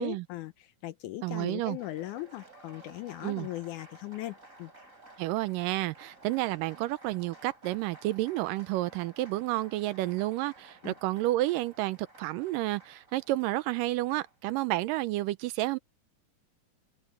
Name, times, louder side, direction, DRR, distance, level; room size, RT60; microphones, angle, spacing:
voice 1, 0.0-4.7 10.8-10.9, left 15 dB, 75° left, 1.9 m, -39 dB
voice 2, 1.2-1.8 3.2-3.5 5.2-15.8, right 17 dB, 80° right, 2.2 m, -30 dB
Applause, 1.4-14.7, right 2 dB, 20° right, 6.3 m, -55 dB
omnidirectional pair, 4.0 m